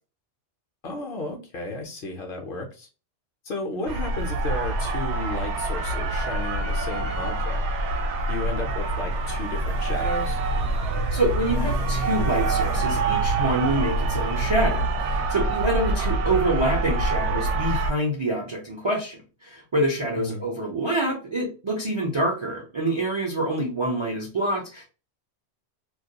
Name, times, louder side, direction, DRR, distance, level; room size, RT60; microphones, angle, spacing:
voice 1, 0.8-2.9 3.4-7.6 8.3-10.4 20.2-20.4, left 2 dB, 60° left, 2 dB, 0.7 m, -33 dB
sound 1, 3.9-17.9, right 2 dB, 75° right, 0.8 m, -25 dB
voice 2, 11.1-24.9, right 1 dB, 45° right, -2 dB, 0.3 m, -26 dB
2.3 x 2.2 x 2.7 m, 0.34 s
omnidirectional pair, 1.2 m